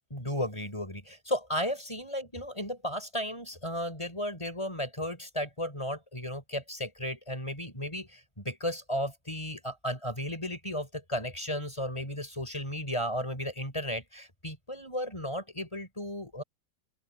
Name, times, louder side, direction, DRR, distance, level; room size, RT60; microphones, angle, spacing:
voice 1, 0.1-16.4, equal, 15° left, 5.6 m, -34 dB
open air
omnidirectional pair, 2.0 m